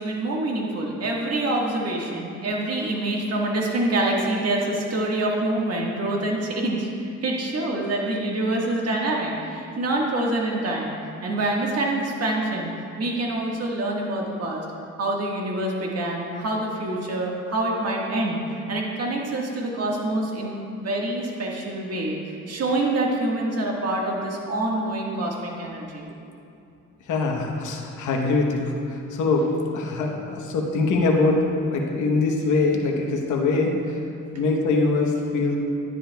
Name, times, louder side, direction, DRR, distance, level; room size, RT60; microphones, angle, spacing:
voice 1, 0.0-10.9 11.2-12.7 13.0-14.6 15.0-26.1, right 1 dB, 55° right, -1 dB, 1.6 m, -26 dB
voice 2, 27.1-29.5 29.7-31.4 31.7-34.0 34.3-35.6, left 3 dB, 75° left, 0 dB, 1.1 m, -23 dB
10.5 x 10.0 x 2.3 m, 2.7 s
cardioid pair, 90°, 30 cm